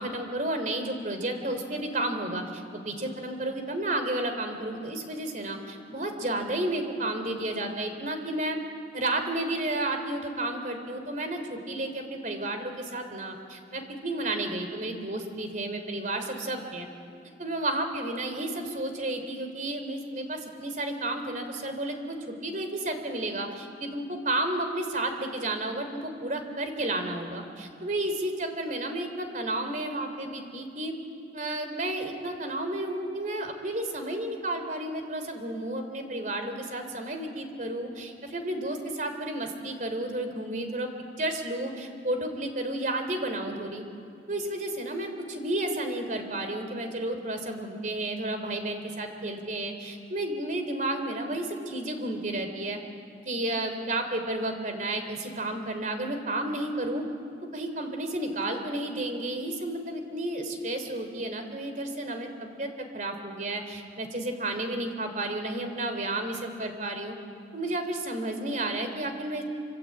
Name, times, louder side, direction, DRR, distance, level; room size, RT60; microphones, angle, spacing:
voice 1, 0.0-8.6 8.9-16.9 17.4-30.9 31.3-40.9 41.2-43.8 44.3-52.8 53.3-57.0 57.5-67.2 67.5-69.4, right 1 dB, 45° right, 6 dB, 3.5 m, -32 dB
26.0 x 26.0 x 8.8 m, 2.5 s
head